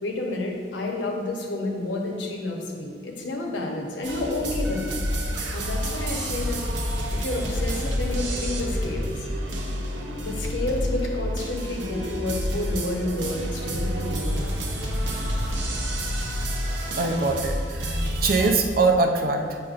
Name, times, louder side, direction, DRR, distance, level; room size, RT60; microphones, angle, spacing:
voice 1, 0.0-5.0 5.5-6.6 7.1-9.3 10.2-14.5 15.6-15.7, left 2 dB, 75° left, 0 dB, 1.0 m, -30 dB
sound 1, 4.0-18.5, equal, 80° right, 0.9 m, -28 dB
voice 2, 17.0-19.6, right 3 dB, 50° right, 3 dB, 0.6 m, -23 dB
7.9 x 5.7 x 2.5 m, 2.1 s
head